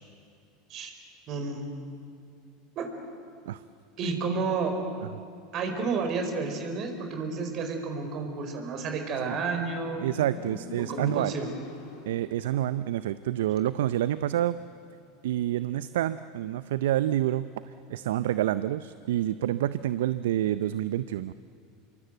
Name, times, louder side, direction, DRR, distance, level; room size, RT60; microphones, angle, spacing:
voice 1, 1.3-1.7 2.8-2.9 4.0-4.8 5.5-10.1 10.9-11.5, right 4 dB, 50° right, 5 dB, 4.7 m, -31 dB
Motorcycle, 8.9-12.4, left 3 dB, 70° left, 7.4 m, -43 dB
voice 2, 10.0-11.3 12.1-14.6 15.2-21.3, right 12 dB, 75° right, 14 dB, 0.6 m, -28 dB
26.5 x 23.0 x 8.1 m, 2.4 s
hypercardioid pair, 85°, 0 cm